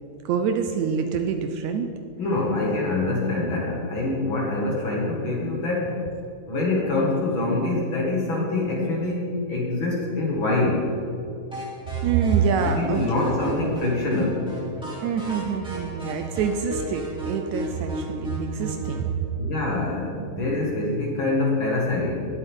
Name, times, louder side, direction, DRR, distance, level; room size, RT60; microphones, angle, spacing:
voice 1, 0.3-1.9 12.0-13.7 15.0-19.3, right 6 dB, 75° right, 6 dB, 1.8 m, -26 dB
voice 2, 2.2-5.9 6.5-10.8 12.7-14.5 19.4-22.3, left 2 dB, 45° left, -3 dB, 2.5 m, -25 dB
sound 1, 11.5-19.1, equal, ahead, 2.6 m, -35 dB
19.5 x 8.4 x 3.6 m, 2.7 s
omnidirectional pair, 3.6 m